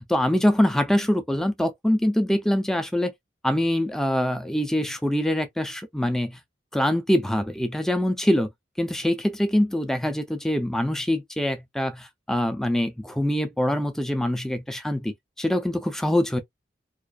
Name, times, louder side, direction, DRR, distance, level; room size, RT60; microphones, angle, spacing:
voice 1, 0.1-3.1 3.4-6.4 6.7-8.5 8.8-16.4, left 1 dB, 5° left, 0.3 m, -24 dB
2.4 x 2.3 x 2.2 m
head